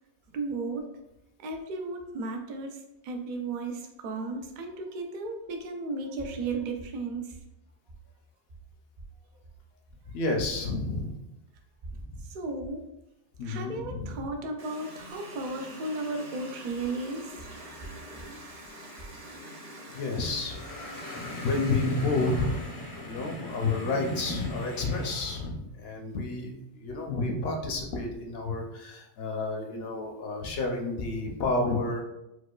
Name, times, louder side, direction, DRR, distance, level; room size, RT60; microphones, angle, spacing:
voice 1, 0.3-0.9 1.4-7.4 12.2-12.9 13.4-17.6, right 3 dB, 55° right, 4 dB, 0.5 m, -35 dB
voice 2, 10.1-11.2 11.9-12.2 13.4-14.2 19.9-20.6 21.2-22.6 23.1-32.0, left 3 dB, 65° left, 1 dB, 0.8 m, -30 dB
Water tap faucet, 14.6-23.1, equal, 35° right, 0.9 m, -45 dB
sound 1, 20.4-25.5, left 1 dB, 35° left, 0.3 m, -38 dB
4.7 x 2.2 x 2.3 m, 0.87 s
omnidirectional pair, 1.2 m